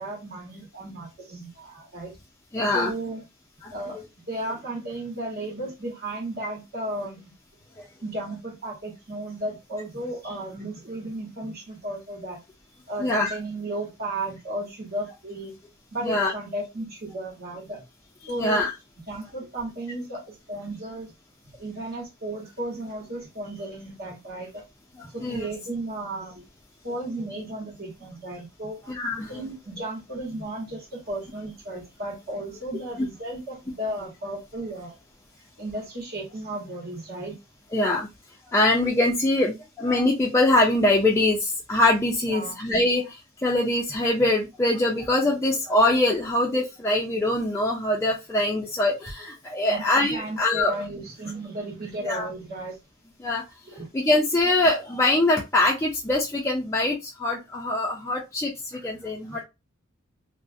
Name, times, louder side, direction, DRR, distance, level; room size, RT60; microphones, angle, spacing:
voice 1, 0.0-2.1 2.7-3.2 3.7-4.0 4.3-7.3 8.0-12.4 12.9-15.5 15.9-17.8 18.3-18.7 19.1-21.1 21.6-24.6 25.0-26.4 26.8-28.8 29.2-34.9 35.6-37.4 42.3-42.5 49.7-52.8 53.7-53.9 59.3-59.4, right 1 dB, 50° right, 1.1 m, -34 dB
voice 2, 2.5-2.9 3.6-3.7 7.8-7.9 13.0-13.4 16.0-16.3 18.4-18.7 25.0-25.5 28.9-29.3 37.7-38.1 38.5-50.7 52.0-52.3 53.2-53.4 53.9-59.4, left 2 dB, 15° left, 0.4 m, -23 dB
2.3 x 2.0 x 2.6 m
head